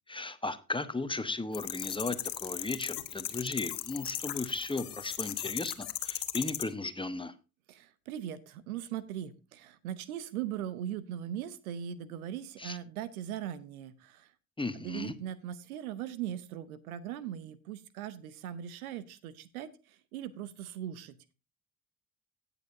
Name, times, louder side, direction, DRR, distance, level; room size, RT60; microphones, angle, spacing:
voice 1, 0.1-7.3 12.6-12.8 14.6-15.1, left 3 dB, 10° left, 11 dB, 1.1 m, -36 dB
sound 1, 1.5-6.6, left 13 dB, 50° left, 1.3 m, -37 dB
voice 2, 7.7-14.3 14.7-21.3, right 10 dB, 80° right, 17 dB, 0.9 m, -40 dB
17.0 x 6.9 x 2.7 m, 0.30 s
figure-of-eight pair, 50°, 43 cm